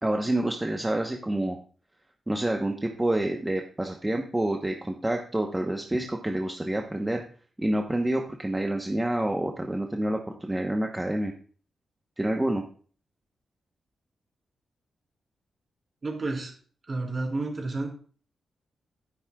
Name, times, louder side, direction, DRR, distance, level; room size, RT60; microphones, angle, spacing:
voice 1, 0.0-1.6 2.3-7.2 7.6-11.3 12.2-12.6, right 1 dB, 10° right, 2 dB, 0.9 m, -28 dB
voice 2, 16.0-16.5 16.9-17.9, right 2 dB, 35° right, -2 dB, 4.0 m, -30 dB
12.5 x 10.5 x 2.3 m, 0.42 s
wide cardioid pair, 115°, 0 cm